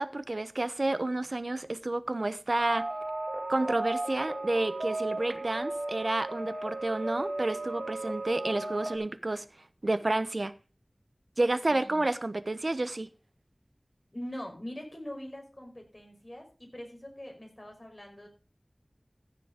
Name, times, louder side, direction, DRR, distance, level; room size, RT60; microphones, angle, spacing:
voice 1, 0.0-2.8 3.5-10.5 11.4-13.1, right 2 dB, 70° right, 0.8 m, -30 dB
sound 1, 2.6-9.0, right 2 dB, 85° right, 2.4 m, -35 dB
voice 2, 11.7-12.1 14.1-18.3, left 1 dB, 35° left, 5.1 m, -43 dB
15.0 x 6.9 x 5.1 m
wide cardioid pair, 45°, 0 cm